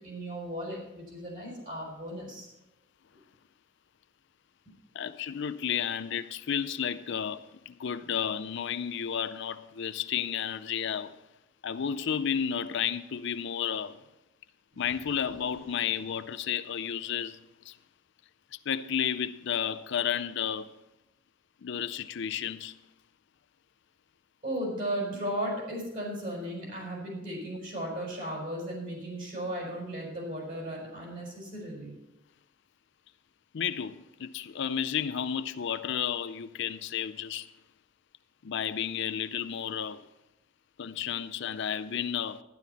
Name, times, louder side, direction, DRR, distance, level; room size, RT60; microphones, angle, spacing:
voice 1, 0.0-2.5 24.4-32.0, right 1 dB, 45° right, 5.3 m, -36 dB
voice 2, 4.9-11.2 11.6-14.0 14.8-17.8 18.5-20.7 21.6-22.8 33.5-37.5 38.4-40.0 40.8-42.4, left 8 dB, 60° left, 0.4 m, -32 dB
sound 1, 14.7-17.2, equal, 80° right, 4.3 m, -55 dB
12.0 x 10.5 x 4.1 m
head